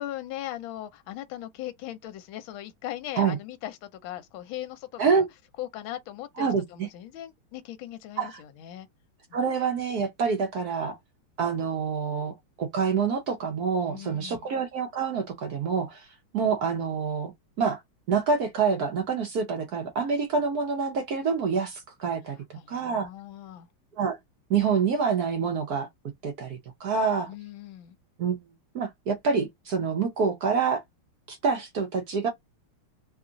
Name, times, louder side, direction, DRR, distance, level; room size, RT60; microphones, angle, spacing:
voice 1, 0.0-5.3 5.6-8.9 9.3-9.4 13.9-14.5 22.5-23.7 27.3-28.0, left 13 dB, 75° left, 1.4 m, -39 dB
voice 2, 9.3-11.0 11.4-16.1 16.3-17.3 17.6-17.8 18.1-23.1 24.0-24.2 24.5-25.9 26.2-27.3 28.2-28.4 28.7-30.8 31.3-32.3, right 5 dB, 60° right, 1.0 m, -27 dB
3.5 x 2.4 x 3.8 m
omnidirectional pair, 2.4 m